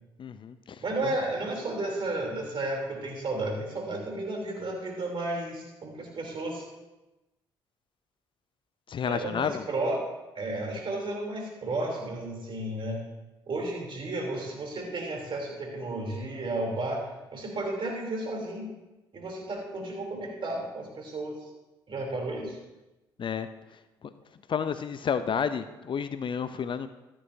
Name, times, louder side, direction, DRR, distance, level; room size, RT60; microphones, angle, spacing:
voice 1, 0.2-1.1 8.9-9.6 23.2-23.5 24.5-26.9, left 7 dB, 45° left, 12 dB, 0.6 m, -31 dB
voice 2, 0.8-6.7 9.0-10.0 10.3-13.1 13.5-17.1 17.3-18.7 19.1-21.4 21.9-22.6, right 2 dB, 50° right, 0 dB, 3.3 m, -33 dB
13.5 x 9.9 x 2.7 m, 1.0 s
hypercardioid pair, 50°, 11 cm